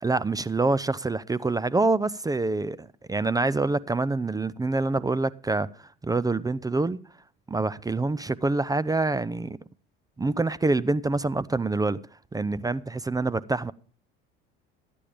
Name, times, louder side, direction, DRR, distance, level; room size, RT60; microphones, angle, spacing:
voice 1, 0.0-7.0 7.5-9.6 10.2-12.0 12.3-13.7, right 3 dB, 15° right, 0.5 m, -26 dB
14.0 x 10.5 x 5.0 m
supercardioid pair, 85°, 29 cm